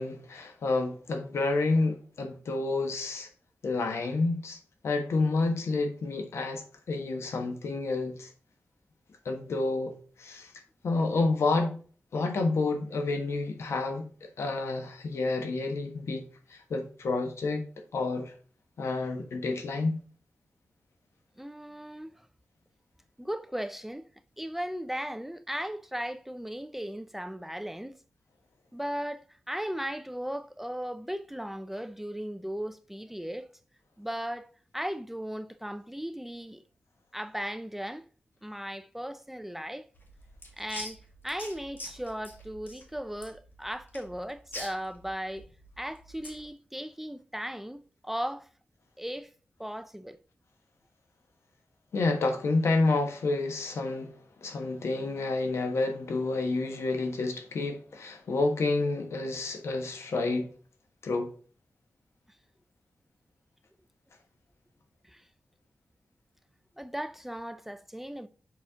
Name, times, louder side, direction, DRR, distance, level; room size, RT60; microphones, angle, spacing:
voice 1, 0.0-3.3 3.6-4.6 4.8-8.3 9.2-10.5 10.8-11.8 12.1-16.2 16.5-18.3 18.8-20.0 51.9-54.2 54.4-60.5 61.0-61.3, left 3 dB, 85° left, 1.3 m, -29 dB
voice 2, 21.4-22.3 23.2-24.1 24.4-28.0 28.7-33.5 34.0-34.5 34.7-36.6 37.1-38.1 38.4-39.9 40.6-45.5 45.8-48.5 49.0-49.3 49.6-50.2 65.0-65.2 66.8-68.3, equal, 5° right, 0.4 m, -37 dB
sound 1, 39.9-46.5, left 1 dB, 50° left, 2.5 m, -45 dB
7.3 x 4.2 x 3.6 m
wide cardioid pair, 110°, 4 cm